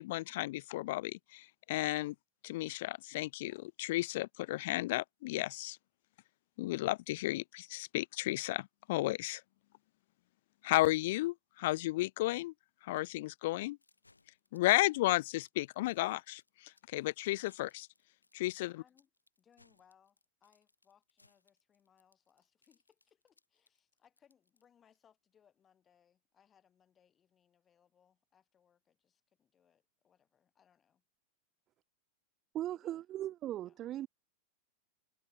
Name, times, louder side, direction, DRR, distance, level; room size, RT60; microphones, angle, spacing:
voice 1, 0.0-2.1 2.4-5.8 6.6-9.4 10.6-12.5 12.8-13.8 14.5-17.9 18.3-18.8, left 18 dB, 50° left, 0.4 m, -33 dB
sound 1, 13.8-25.0, left 3 dB, 80° left, 5.4 m, -69 dB
voice 2, 18.6-19.1 19.4-31.0 32.7-33.0 33.6-34.0, left 8 dB, 25° left, 7.6 m, -70 dB
voice 3, 32.5-34.1, right 13 dB, 30° right, 0.7 m, -38 dB
figure-of-eight pair, 90°, 0 cm